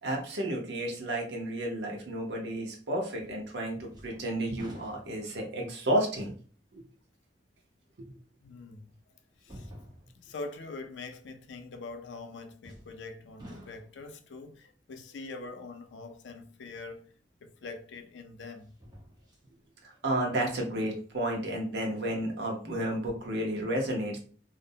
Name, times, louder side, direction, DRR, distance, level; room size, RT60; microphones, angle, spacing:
voice 1, 0.0-6.3 6.7-6.8 19.8-24.2, right 1 dB, 70° right, 0.7 m, -32 dB
sound 1, 3.2-3.6 3.9-5.5 6.1-6.2 8.0-8.1 9.4-10.3 12.6-13.1 13.4-14.1 17.1-17.2 18.6-19.5 19.9-20.0, equal, 25° right, 0.8 m, -49 dB
voice 2, 8.4-8.9 9.4-9.7 10.1-17.0 17.4-18.7, left 3 dB, 90° left, 0.4 m, -43 dB
2.5 x 2.0 x 2.7 m
head